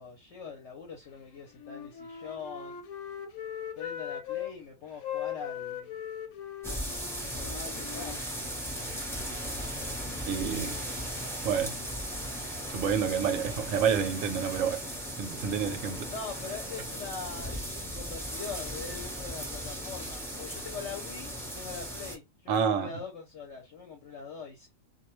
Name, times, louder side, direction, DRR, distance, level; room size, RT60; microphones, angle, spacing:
voice 1, 0.0-2.8 3.7-5.9 7.1-8.2 16.1-24.7, left 5 dB, 60° left, 0.9 m, -42 dB
Wind instrument woodwind instrument, 1.5-4.5 5.0-8.8, left 9 dB, 85° left, 1.1 m, -39 dB
sound 1, 6.6-22.2, equal, ahead, 0.6 m, -37 dB
voice 2, 10.3-10.8 11.4-11.8 12.7-14.8 15.2-16.1 22.5-22.9, right 7 dB, 75° right, 0.9 m, -28 dB
2.3 x 2.2 x 2.9 m
omnidirectional pair, 1.5 m